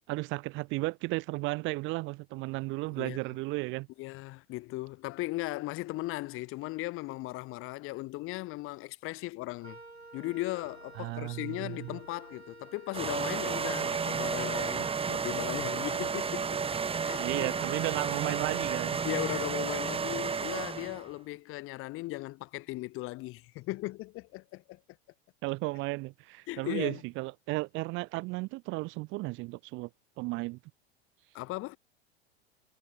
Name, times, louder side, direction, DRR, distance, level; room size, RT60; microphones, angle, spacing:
voice 1, 0.1-3.9 11.0-11.9 17.2-19.0 25.4-29.9 30.2-30.6, right 23 dB, 40° right, 0.9 m, -34 dB
voice 2, 4.0-9.8 10.1-16.7 17.0-17.6 19.0-24.8 26.5-27.0 31.3-31.8, left 20 dB, 45° left, 3.4 m, -37 dB
Wind instrument woodwind instrument, 9.6-20.0, right 2 dB, 90° right, 3.3 m, -50 dB
sound 1, 12.9-21.1, right 6 dB, 20° right, 2.9 m, -32 dB
figure-of-eight pair, 85°, 31 cm